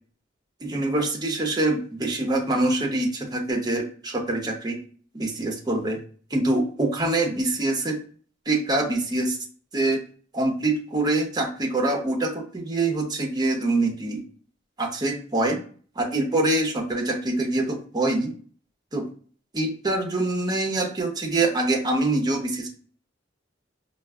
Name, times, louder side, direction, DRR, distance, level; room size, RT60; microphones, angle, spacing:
voice 1, 0.6-4.8 5.1-6.0 6.3-8.0 8.5-9.4 9.7-10.0 10.3-14.2 14.8-15.6 16.0-18.3 18.9-19.1 19.5-22.7, right 2 dB, 20° right, 2 dB, 0.7 m, -25 dB
4.6 x 2.3 x 2.3 m, 0.44 s
head